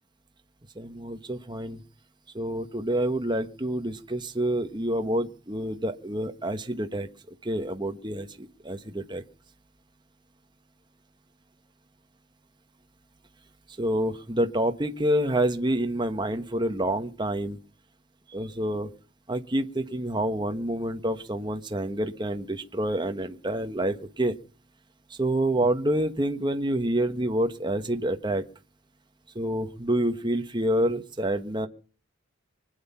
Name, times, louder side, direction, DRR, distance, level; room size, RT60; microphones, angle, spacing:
voice 1, 0.8-1.8 2.3-7.1 7.4-9.2 13.8-17.6 18.3-18.9 19.3-24.3 25.1-28.4 29.3-31.7, right 1 dB, 20° right, 7 dB, 1.4 m, -28 dB
25.0 x 9.6 x 5.8 m, 0.40 s
head